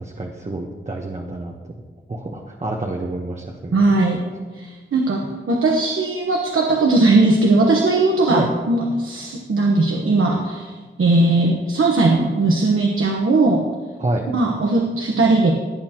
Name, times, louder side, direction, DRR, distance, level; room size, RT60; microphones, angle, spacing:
voice 1, 0.0-1.7 2.1-3.8 8.3-8.5 14.0-14.3, right 2 dB, 35° right, 0 dB, 1.0 m, -28 dB
voice 2, 3.7-4.2 4.5-10.7 11.0-13.6 14.3-15.5, right 2 dB, 90° right, 0 dB, 1.2 m, -18 dB
17.5 x 8.8 x 3.0 m, 1.4 s
wide cardioid pair, 110°, 21 cm